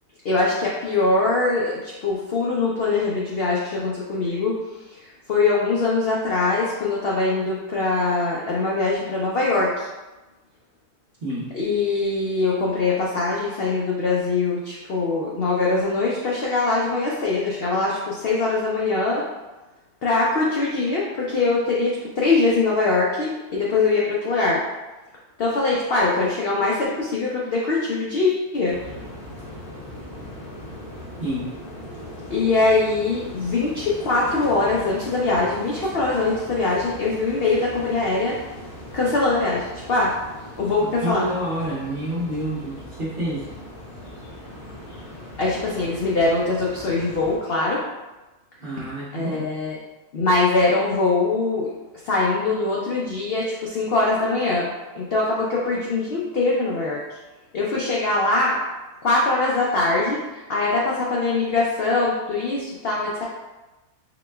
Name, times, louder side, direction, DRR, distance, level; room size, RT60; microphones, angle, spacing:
voice 1, 0.2-9.9 11.5-19.2 20.0-24.6 25.4-28.8 32.3-38.4 38.9-40.1 40.6-41.3 45.4-47.8 48.8-48.9 49.1-49.8 50.1-51.7 52.0-57.2 57.5-58.6 59.0-63.2, left 3 dB, 70° left, -4 dB, 0.5 m, -22 dB
sound 1, 28.7-47.4, left 1 dB, 85° left, 1.5 m, -39 dB
voice 2, 31.2-31.5 41.0-43.5 48.6-49.5, equal, 45° right, -8 dB, 0.7 m, -28 dB
4.0 x 2.2 x 3.2 m, 1.1 s
omnidirectional pair, 1.6 m